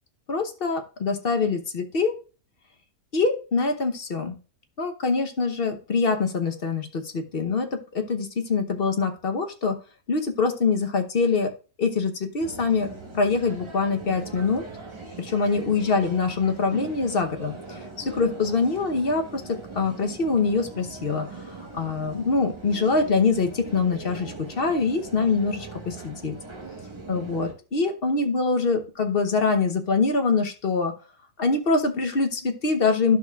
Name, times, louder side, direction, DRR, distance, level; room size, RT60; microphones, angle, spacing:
voice 1, 0.3-2.1 3.1-4.4 4.8-9.8 10.1-11.5 11.8-12.9 13.1-14.6 15.2-26.3 27.1-30.9 31.4-33.2, left 4 dB, 45° left, 6 dB, 1.1 m, -24 dB
sound 1, 12.4-27.5, right 3 dB, 20° right, 1.3 m, -40 dB
11.5 x 6.1 x 2.4 m, 0.35 s
omnidirectional pair, 1.5 m